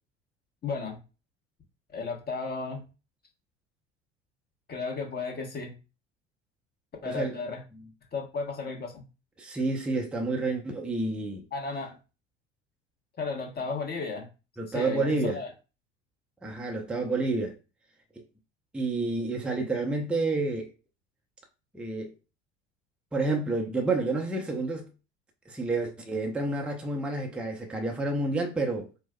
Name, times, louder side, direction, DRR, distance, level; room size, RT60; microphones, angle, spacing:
voice 1, 0.6-1.0 1.9-2.8 4.7-5.7 7.0-7.6 8.1-9.0 11.5-12.0 13.2-14.3 14.7-15.5, left 4 dB, 25° left, 1.2 m, -34 dB
voice 2, 7.0-7.4 9.4-11.4 14.6-15.4 16.4-17.5 18.7-20.7 21.7-22.1 23.1-24.9 25.5-28.9, right 3 dB, 5° right, 0.6 m, -29 dB
4.6 x 2.1 x 2.2 m
figure-of-eight pair, 60°, 35 cm